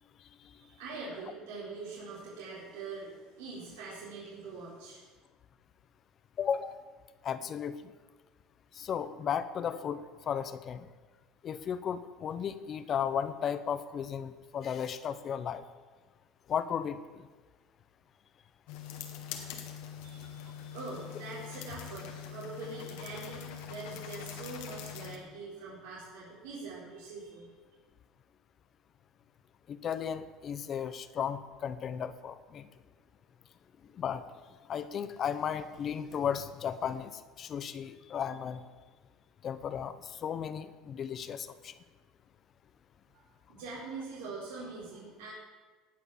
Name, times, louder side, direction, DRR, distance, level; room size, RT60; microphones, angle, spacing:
voice 1, 0.6-5.1 20.0-27.5 43.1-43.2 43.5-45.3, right 3 dB, 85° right, -7 dB, 4.3 m, -43 dB
voice 2, 6.4-6.8 7.2-7.9 8.7-10.9 11.4-15.6 16.5-17.3 29.7-32.7 33.9-34.2 34.7-38.6 39.4-41.7, left 8 dB, 35° left, 13 dB, 0.9 m, -35 dB
sound 1, 18.7-25.2, left 8 dB, 80° left, 1.8 m, -43 dB
18.5 x 6.5 x 7.2 m, 1.4 s
cardioid pair, 130°, 0 cm